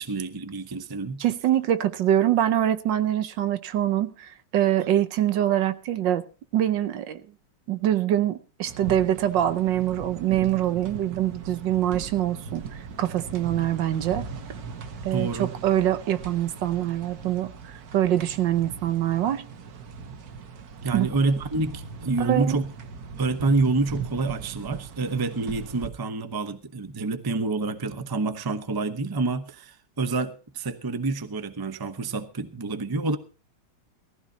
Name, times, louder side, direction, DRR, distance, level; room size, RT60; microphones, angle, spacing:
voice 1, 0.0-1.2 15.1-15.5 20.8-22.7 23.2-33.2, right 3 dB, 20° right, 0.6 m, -27 dB
voice 2, 1.2-6.2 6.5-7.2 7.7-12.6 13.0-14.2 15.0-19.4 20.9-21.1 22.2-22.6, right 12 dB, 75° right, 1.5 m, -24 dB
sound 1, 8.6-25.9, right 5 dB, 60° right, 1.5 m, -39 dB
18.5 x 15.0 x 2.8 m
omnidirectional pair, 2.0 m